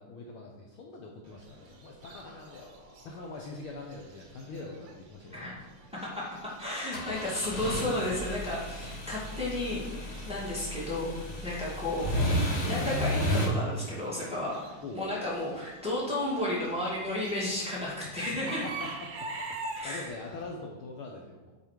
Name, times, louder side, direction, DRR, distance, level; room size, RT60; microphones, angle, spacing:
voice 1, 0.0-5.9 8.9-9.2 11.3-11.5 14.3-14.4 14.8-15.0 18.0-18.2 18.6-18.9 19.5-21.5, left 3 dB, 85° left, -1 dB, 1.1 m, -44 dB
Chicken rooster / Bird, 1.2-20.4, right 3 dB, 65° right, 2.1 m, -47 dB
voice 2, 6.2-11.1 11.4-12.3 12.7-14.5 14.9-18.6 19.8-20.1, left 1 dB, ahead, -7 dB, 1.7 m, -33 dB
sound 1, 6.9-13.5, left 1 dB, 55° left, 0.7 m, -32 dB
8.0 x 4.8 x 5.1 m, 1.2 s
omnidirectional pair, 3.5 m